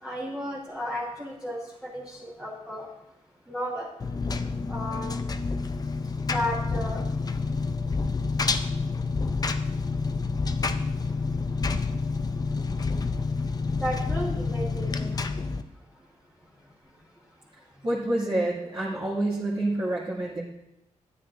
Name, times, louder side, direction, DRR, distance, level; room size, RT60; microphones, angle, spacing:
voice 1, 0.0-2.9 3.5-3.9 4.7-5.1 6.3-7.0 13.7-15.1, equal, 5° right, -6 dB, 1.4 m, -33 dB
Engine, 4.0-15.6, left 4 dB, 30° left, 0.5 m, -28 dB
voice 2, 17.8-20.4, right 1 dB, 45° right, -9 dB, 2.1 m, -27 dB
13.0 x 9.7 x 2.5 m, 0.89 s
wide cardioid pair, 135°, 13 cm